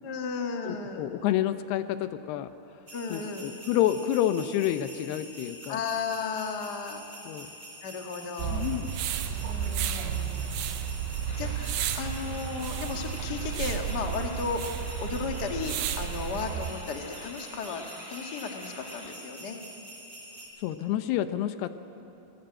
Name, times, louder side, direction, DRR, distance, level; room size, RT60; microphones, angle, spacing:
voice 1, 0.0-1.1 2.9-3.5 5.7-7.1 7.8-8.6 9.4-10.4 11.3-17.8 18.1-19.6, left 5 dB, 55° left, 3 dB, 1.1 m, -35 dB
voice 2, 0.7-2.5 3.1-5.8 7.3-7.5 8.5-8.9 20.6-21.7, left 12 dB, 80° left, 11 dB, 2.8 m, -29 dB
sound 1, 2.9-20.5, right 1 dB, 35° right, 5.1 m, -46 dB
sound 2, 8.4-16.7, right 8 dB, 85° right, 3.1 m, -32 dB
sound 3, 11.3-19.1, left 1 dB, 15° left, 1.7 m, -47 dB
24.5 x 18.0 x 8.8 m, 2.9 s
omnidirectional pair, 4.8 m